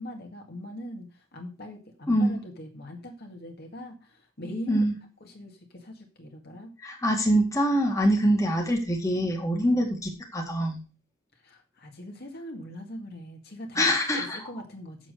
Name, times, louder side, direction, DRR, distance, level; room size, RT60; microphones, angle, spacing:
voice 1, 0.0-4.9 5.2-6.7 9.6-9.9 11.4-15.1, equal, 50° left, 3 dB, 2.0 m, -41 dB
voice 2, 2.1-2.4 4.7-4.9 6.8-10.8 13.8-14.5, equal, 15° left, 1 dB, 1.9 m, -24 dB
7.4 x 7.3 x 6.6 m, 0.34 s
head